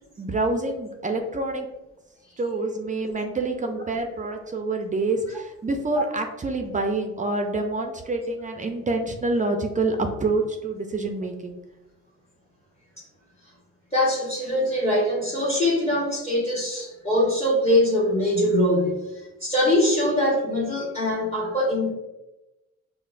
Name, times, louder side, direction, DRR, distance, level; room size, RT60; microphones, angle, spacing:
voice 1, 0.2-1.7 2.4-11.6, right 2 dB, 25° right, 4 dB, 0.4 m, -27 dB
voice 2, 13.9-21.9, left 1 dB, 20° left, -5 dB, 1.0 m, -23 dB
5.5 x 2.1 x 2.5 m, 1.0 s
cardioid pair, 90°, 30 cm